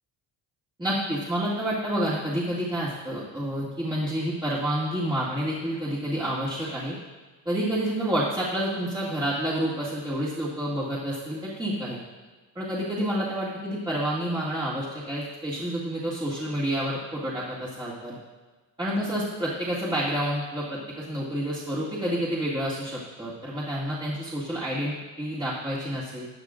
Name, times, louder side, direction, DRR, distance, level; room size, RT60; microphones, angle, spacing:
voice 1, 0.8-7.0 7.5-12.0 12.6-18.2 18.8-26.3, equal, 10° right, -8 dB, 2.2 m, -29 dB
14.0 x 9.2 x 2.5 m, 1.3 s
cardioid pair, 70°, 45 cm